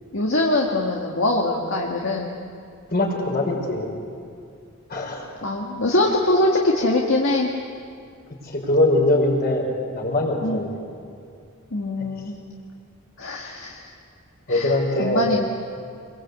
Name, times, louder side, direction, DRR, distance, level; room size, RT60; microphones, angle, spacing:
voice 1, 0.1-2.3 5.4-7.5 10.4-10.6 11.7-12.4 13.2-13.9 14.5-15.5, left 1 dB, 60° left, -1 dB, 1.9 m, -23 dB
voice 2, 2.9-3.9 4.9-5.3 8.4-10.7 14.5-15.3, left 1 dB, 45° left, 0 dB, 5.5 m, -22 dB
26.5 x 23.0 x 8.3 m, 2.4 s
head